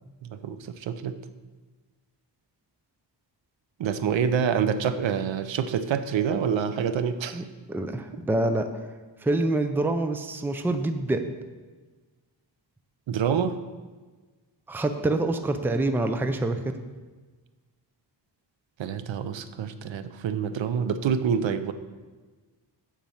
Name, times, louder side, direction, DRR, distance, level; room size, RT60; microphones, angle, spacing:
voice 1, 0.3-1.2 3.8-7.4 13.1-13.6 18.8-21.7, right 7 dB, 90° right, 11 dB, 0.7 m, -27 dB
voice 2, 7.3-8.7 9.2-11.2 14.7-16.6, right 2 dB, 5° right, 7 dB, 0.4 m, -26 dB
7.4 x 5.4 x 7.0 m, 1.3 s
wide cardioid pair, 175°, 44 cm